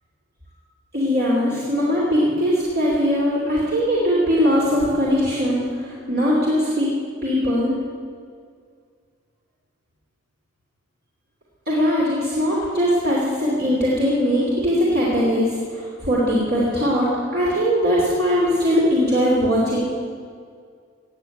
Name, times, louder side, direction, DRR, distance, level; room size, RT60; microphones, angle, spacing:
voice 1, 0.9-6.9 7.2-7.7 11.7-19.9, equal, 50° right, -5 dB, 2.9 m, -20 dB
18.5 x 7.8 x 9.7 m, 2.1 s
head